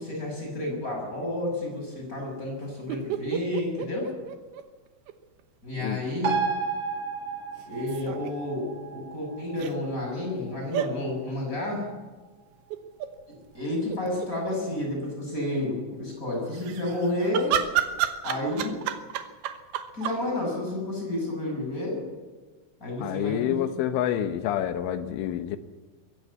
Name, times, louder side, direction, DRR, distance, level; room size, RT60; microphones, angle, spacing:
voice 1, 0.0-4.1 5.6-6.4 7.7-11.9 13.3-17.6 18.2-18.8 19.9-22.0 22.8-23.6, left 1 dB, 15° left, 0 dB, 6.8 m, -30 dB
sound 1, 2.9-5.1 5.4-5.5 7.6-8.3 9.6-9.7 10.7-10.9 12.7-13.1 13.6-13.7 13.9-14.6 16.5-20.2, right 11 dB, 70° right, 2.5 m, -31 dB
sound 2, 6.2-13.2 13.5-13.6, right 6 dB, 40° right, 2.7 m, -34 dB
voice 2, 23.0-25.6, left 10 dB, 80° left, 9 dB, 3.4 m, -28 dB
22.0 x 16.0 x 8.4 m, 1.3 s
omnidirectional pair, 5.6 m